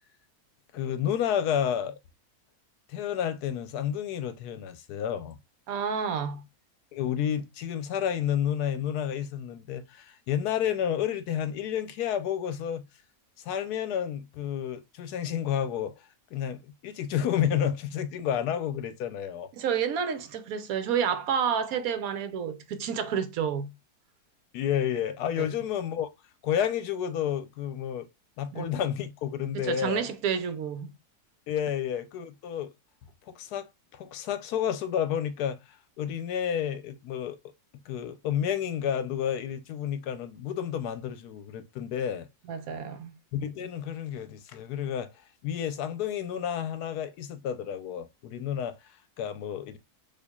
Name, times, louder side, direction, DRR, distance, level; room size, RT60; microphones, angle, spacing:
voice 1, 0.7-2.0 2.9-5.4 6.9-12.9 13.4-19.5 24.5-26.1 26.4-28.1 28.4-30.0 31.5-32.7 33.3-33.7 33.9-37.4 37.9-42.3 43.3-45.1 45.4-49.8, left 9 dB, 80° left, 1.1 m, -30 dB
voice 2, 5.7-6.4 19.6-23.7 25.4-25.5 28.5-28.6 29.5-30.9 42.5-43.1, right 7 dB, 70° right, 1.0 m, -30 dB
4.4 x 2.8 x 2.3 m
omnidirectional pair, 1.7 m